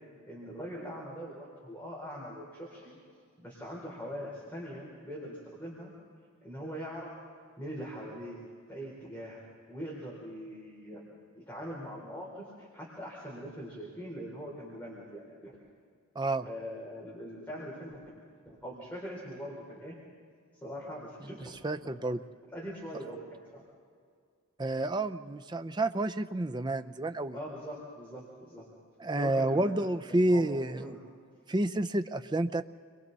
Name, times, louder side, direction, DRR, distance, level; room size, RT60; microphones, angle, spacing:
voice 1, 0.2-3.0 3.4-5.9 6.4-7.1 7.6-8.4 8.7-9.4 9.7-11.1 11.3-15.5 16.4-20.0 20.6-21.4 21.8-22.0 22.5-23.6 27.3-28.6 29.2-30.5 30.8-31.0, equal, 10° left, -6 dB, 4.1 m, -42 dB
voice 2, 21.2-22.2 24.6-27.4 29.0-30.8 31.5-32.6, right 1 dB, 20° right, 10 dB, 0.5 m, -30 dB
29.5 x 23.0 x 4.1 m, 2.1 s
head